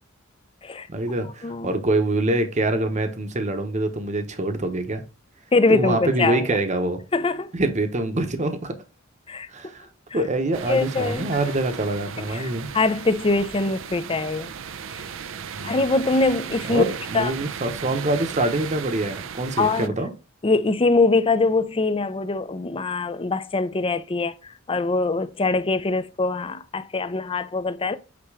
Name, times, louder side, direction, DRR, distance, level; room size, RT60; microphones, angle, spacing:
voice 1, 0.9-5.0 5.7-7.0 7.5-8.8 9.5-9.9 10.1-12.7 15.5-15.8 16.7-20.1, right 2 dB, 35° right, 1.0 m, -25 dB
voice 2, 1.4-1.7 5.5-6.6 7.1-7.5 9.3-9.5 10.1-10.2 10.7-11.3 12.3-14.5 15.6-16.8 17.1-17.3 19.6-19.9 20.4-28.0, left 3 dB, 25° left, 0.5 m, -23 dB
sound 1, 10.5-19.9, right 7 dB, 70° right, 0.5 m, -36 dB
sound 2, 11.3-17.5, left 4 dB, 55° left, 2.4 m, -51 dB
8.5 x 3.0 x 4.8 m
head